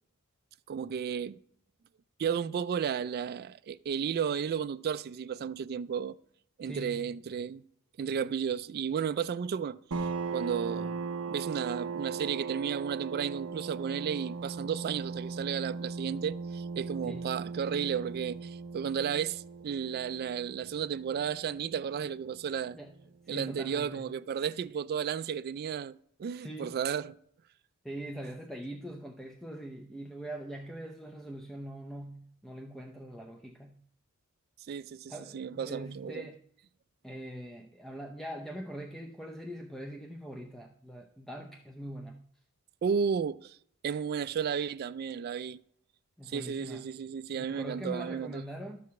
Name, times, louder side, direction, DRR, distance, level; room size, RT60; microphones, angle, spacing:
voice 1, 0.7-1.4 2.2-6.2 6.6-7.6 8.0-11.0 11.3-22.8 23.3-27.2 34.7-36.3 42.8-43.6 43.8-45.6 46.3-48.4, right 7 dB, 45° right, 0.3 m, -33 dB
voice 2, 6.6-7.1 17.0-17.2 22.7-22.9 23.2-24.1 26.4-26.8 27.8-33.8 35.1-36.4 37.0-42.3 46.2-46.9 47.4-48.8, right 1 dB, ahead, 0.6 m, -42 dB
sound 1, 9.9-23.2, right 4 dB, 70° right, 0.7 m, -39 dB
12.5 x 4.8 x 6.9 m
head